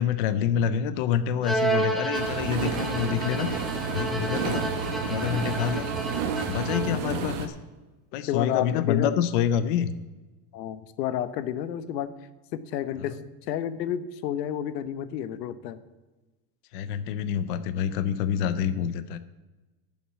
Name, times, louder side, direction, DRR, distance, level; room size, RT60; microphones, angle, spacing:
voice 1, 0.0-3.5 3.9-4.7 5.1-5.9 6.5-7.5 8.1-9.9 13.0-13.2 16.7-19.2, left 9 dB, 35° left, 13 dB, 0.4 m, -27 dB
Bowed string instrument, 1.4-7.1, right 2 dB, ahead, 0.9 m, -31 dB
sound 1, 2.1-7.5, right 5 dB, 30° right, 1.2 m, -31 dB
voice 2, 8.3-9.1 10.5-12.1 12.5-13.2 13.5-15.8, left 10 dB, 85° left, 14 dB, 1.1 m, -30 dB
11.0 x 7.2 x 8.3 m, 1.2 s
supercardioid pair, 175°, 48 cm